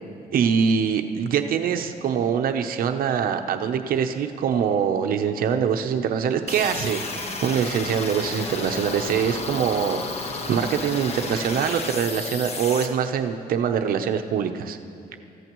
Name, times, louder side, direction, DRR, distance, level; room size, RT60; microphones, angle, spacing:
voice 1, 0.3-14.8, right 7 dB, 65° right, 6 dB, 0.8 m, -24 dB
sound 1, 6.5-12.9, left 3 dB, 40° left, 1.3 m, -32 dB
27.5 x 14.5 x 3.1 m, 2.5 s
cardioid pair, 145°, 16 cm